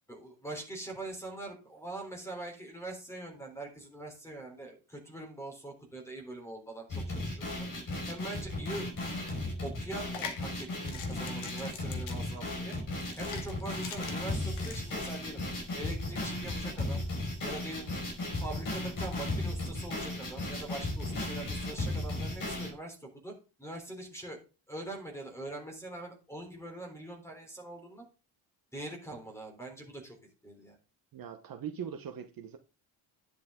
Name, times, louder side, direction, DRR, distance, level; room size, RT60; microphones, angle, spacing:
voice 1, 0.1-8.9 9.6-12.8 13.2-15.4 15.8-17.0 17.4-17.9 18.4-23.3 23.6-24.4 24.7-28.1 28.7-30.2 30.4-30.8, right 2 dB, 5° left, 3.5 m, -43 dB
sound 1, 6.9-22.7, left 1 dB, 40° left, 5.4 m, -35 dB
sound 2, 10.0-15.2, left 7 dB, 70° left, 2.3 m, -44 dB
voice 2, 31.1-32.6, right 8 dB, 45° right, 1.1 m, -41 dB
10.5 x 8.4 x 3.7 m
cardioid pair, 175°, 48 cm